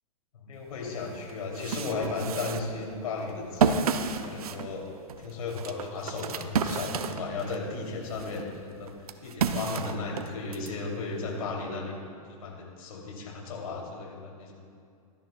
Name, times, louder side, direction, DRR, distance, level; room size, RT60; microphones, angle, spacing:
voice 1, 0.3-4.9 5.2-8.9 9.2-12.0 12.3-14.5, left 3 dB, 75° left, -1 dB, 3.0 m, -35 dB
sound 1, 0.8-0.9 1.3-7.7 8.1-10.7, right 6 dB, 85° right, 0.7 m, -31 dB
17.0 x 13.0 x 2.3 m, 2.3 s
hypercardioid pair, 140°, 19 cm